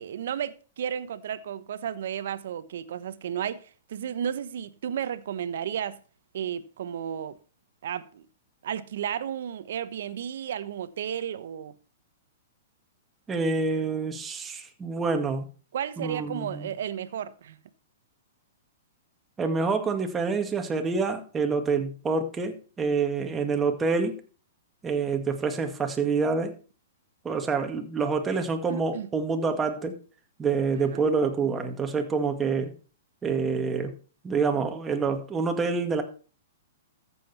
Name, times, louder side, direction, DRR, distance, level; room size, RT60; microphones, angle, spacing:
voice 1, 0.0-6.0 6.3-7.4 7.8-8.3 8.6-11.7 15.7-17.6 28.7-29.1 30.9-31.1, right 9 dB, 70° right, 1.0 m, -33 dB
voice 2, 13.3-15.5 16.0-16.7 19.4-24.2 24.8-26.5 27.2-30.0 30.4-32.7 33.2-33.9 34.2-36.0, right 4 dB, 15° right, 2.0 m, -27 dB
14.0 x 7.6 x 4.3 m
hypercardioid pair, 135°, 0 cm